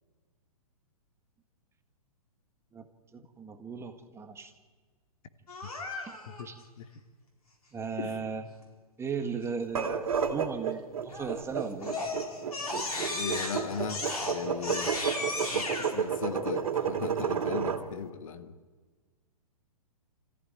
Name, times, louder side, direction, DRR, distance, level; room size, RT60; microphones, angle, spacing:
voice 1, 3.1-4.5 6.1-6.2 6.4-6.5 7.7-8.4 9.0-11.9, right 5 dB, 15° right, 7 dB, 1.7 m, -36 dB
Crying sobbing, 5.5-6.4 11.1-11.4 11.8-15.9, left 2 dB, 85° left, 4.5 m, -35 dB
sound 1, 9.6-17.8, right 7 dB, 70° right, 2.6 m, -31 dB
voice 2, 12.7-15.0 15.5-18.6, left 7 dB, 60° left, 10 dB, 1.6 m, -38 dB
28.0 x 15.0 x 9.0 m, 1.4 s
hypercardioid pair, 120°, 19 cm